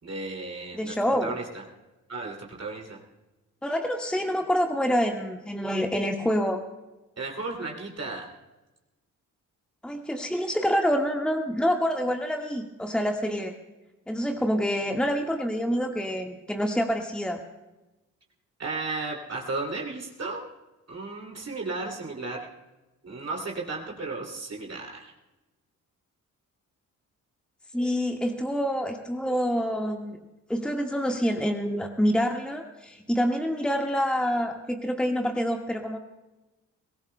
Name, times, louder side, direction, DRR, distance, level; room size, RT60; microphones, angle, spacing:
voice 1, 0.0-0.9 1.2-1.6 2.1-3.0 7.2-8.3 18.6-20.5 20.9-22.5 23.0-25.1, right 3 dB, 40° right, -1 dB, 2.7 m, -34 dB
voice 2, 0.7-1.4 3.6-6.6 9.8-13.5 14.1-17.4 27.7-30.2 30.5-36.0, equal, ahead, 2 dB, 1.5 m, -27 dB
23.5 x 18.5 x 2.2 m, 1.1 s
hypercardioid pair, 45°, 40 cm